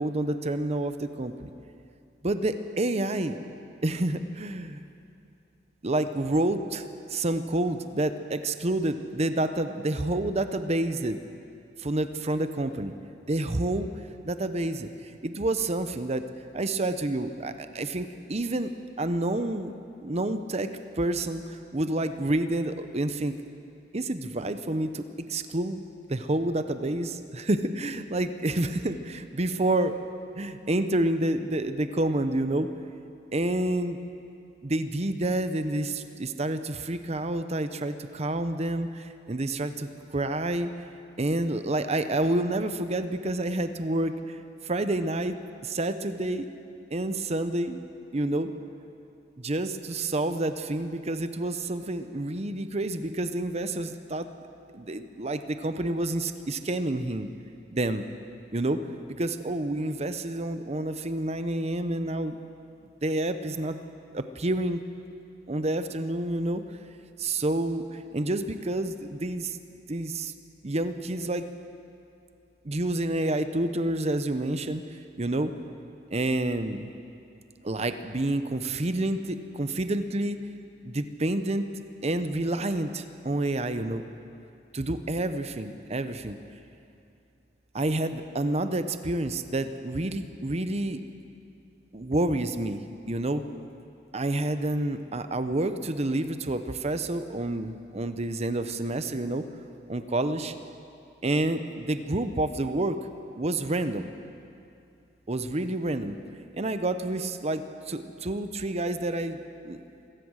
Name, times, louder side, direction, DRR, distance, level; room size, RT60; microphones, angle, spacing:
voice 1, 0.0-1.5 2.2-3.4 3.8-4.8 5.8-6.8 7.1-11.2 11.8-12.9 13.3-13.9 14.2-16.3 16.5-19.7 20.0-20.7 21.0-23.4 23.9-25.8 26.1-29.9 30.4-32.7 33.3-34.0 34.6-40.7 41.2-45.4 45.6-46.5 46.9-47.8 48.1-48.5 49.4-54.3 54.7-57.3 57.7-58.0 58.5-58.8 59.2-62.4 63.0-63.8 64.1-64.8 65.5-66.6 67.2-69.6 69.9-70.3 70.6-71.5 72.6-75.5 76.1-76.9 77.6-80.5 80.8-81.7 82.0-84.0 84.7-86.4 87.7-91.0 91.9-92.8 93.1-93.4 94.1-99.4 99.9-100.5 101.2-103.0 103.4-104.1 105.3-106.2 106.5-109.8, right 1 dB, 40° right, 9 dB, 0.9 m, -29 dB
26.5 x 15.5 x 6.5 m, 2.6 s
head